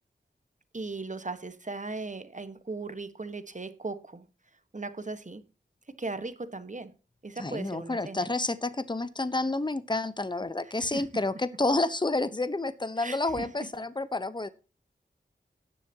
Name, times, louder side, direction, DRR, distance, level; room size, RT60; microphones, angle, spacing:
voice 1, 0.7-4.3 4.7-5.4 6.0-6.9 7.2-8.2 10.8-11.1 13.0-13.5, right 3 dB, 40° right, 11 dB, 1.4 m, -37 dB
voice 2, 7.4-14.5, left 2 dB, 25° left, 14 dB, 0.9 m, -29 dB
17.5 x 7.1 x 2.9 m, 0.33 s
wide cardioid pair, 60°, 20 cm